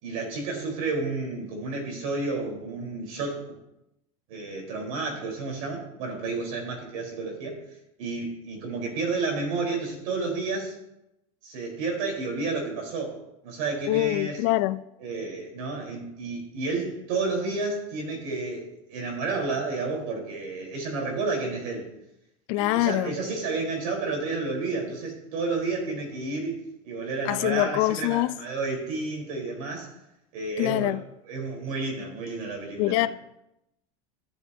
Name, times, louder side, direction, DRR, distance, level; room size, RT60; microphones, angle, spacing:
voice 1, 0.0-3.4 4.3-7.6 8.0-10.8 11.4-14.4 15.0-21.9 22.5-29.9 30.3-31.0 31.3-33.1, right 3 dB, 75° right, 3.9 m, -31 dB
voice 2, 13.9-14.8 22.5-23.2 27.3-28.3 30.6-31.0 32.8-33.1, left 18 dB, 65° left, 0.5 m, -24 dB
15.5 x 6.9 x 2.7 m
supercardioid pair, 115°, 18 cm